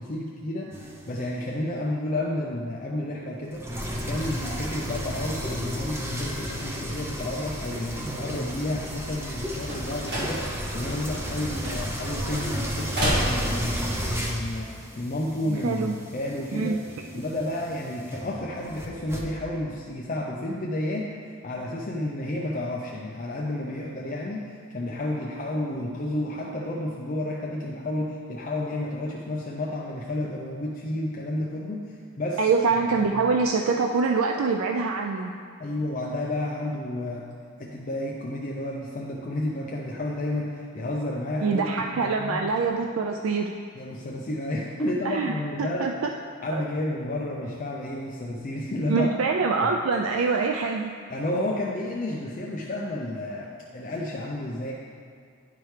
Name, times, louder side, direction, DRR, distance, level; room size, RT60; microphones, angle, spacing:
voice 1, 0.0-3.6 4.0-16.8 17.1-21.1 21.4-32.4 32.7-33.1 35.6-37.3 37.6-41.7 41.9-42.5 43.8-45.9 46.4-49.1 49.6-49.7 51.1-54.7, left 1 dB, 40° left, -3 dB, 0.5 m, -31 dB
sound 1, 0.7-1.3 3.5-19.2, equal, 10° right, 0.6 m, -33 dB
sound 2, 9.1-14.0, right 1 dB, 50° right, 1.6 m, -32 dB
voice 2, 15.5-16.0 16.5-16.8 32.4-35.3 41.4-43.5 45.0-46.1 46.5-46.6 48.9-50.9, right 4 dB, 80° right, 2 dB, 0.4 m, -25 dB
10.5 x 4.8 x 3.2 m, 2.2 s
head